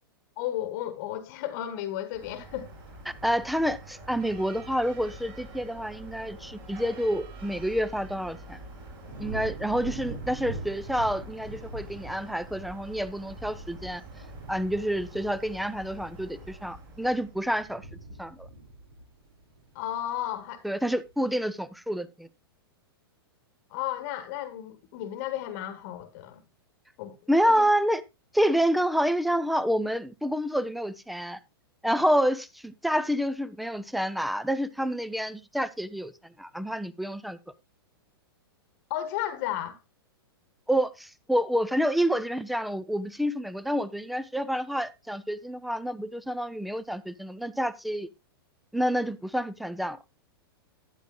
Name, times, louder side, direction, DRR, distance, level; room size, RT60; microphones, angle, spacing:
voice 1, 0.4-2.7 19.7-20.6 23.7-26.4 27.0-27.7 38.9-39.8, left 12 dB, 45° left, 1.2 m, -34 dB
sound 1, 2.1-17.6, right 1 dB, 40° right, 5.3 m, -46 dB
voice 2, 3.2-8.6 9.2-14.0 14.5-17.9 18.2-18.5 20.6-22.3 27.3-28.0 28.3-31.4 31.8-36.1 36.4-37.4 40.7-48.1 48.7-50.0, equal, ahead, 0.6 m, -28 dB
sound 2, 9.0-20.3 20.8-21.2, right 2 dB, 75° right, 3.9 m, -44 dB
12.0 x 9.6 x 2.3 m
hypercardioid pair, 125°, 13 cm